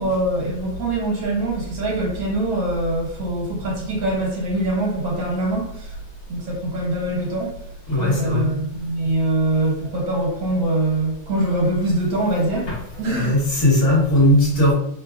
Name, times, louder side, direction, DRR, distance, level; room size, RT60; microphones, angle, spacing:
voice 1, 0.0-5.9 6.3-7.6 8.0-12.7 13.0-13.4, right 2 dB, 70° right, -3 dB, 1.8 m, -23 dB
voice 2, 7.9-8.5 12.7-12.8 13.1-14.7, left 1 dB, 55° left, -4 dB, 1.6 m, -18 dB
3.8 x 3.7 x 2.3 m, 0.69 s
omnidirectional pair, 2.2 m